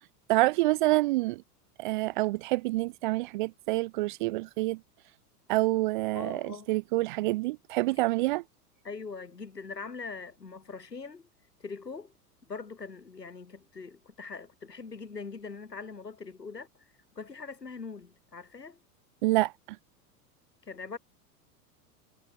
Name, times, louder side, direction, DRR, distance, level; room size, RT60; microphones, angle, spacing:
voice 1, 0.3-1.4 1.8-4.8 5.5-8.4 19.2-19.8, right 20 dB, 35° right, 0.4 m, -27 dB
voice 2, 6.1-6.7 8.8-11.3 11.6-12.1 12.5-18.8 20.6-21.0, left 4 dB, 85° left, 2.1 m, -42 dB
figure-of-eight pair, 85°, 47 cm